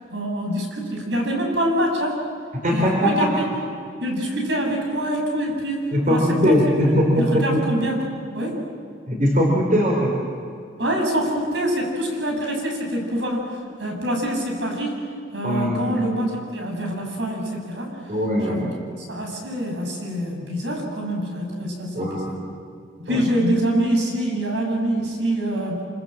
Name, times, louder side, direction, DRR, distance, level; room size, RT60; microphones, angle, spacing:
voice 1, 0.1-2.2 2.7-3.5 4.0-8.0 8.3-8.6 10.8-13.5 13.8-15.0 15.3-17.9 18.4-18.6 19.1-22.2 23.0-25.8, right 1 dB, 70° right, 1 dB, 7.2 m, -25 dB
voice 2, 2.6-3.3 5.9-7.6 9.1-10.2 15.4-16.0 18.1-18.7 21.9-22.3 23.1-23.2, equal, 45° right, -1 dB, 4.9 m, -20 dB
27.5 x 27.0 x 7.7 m, 2.3 s
head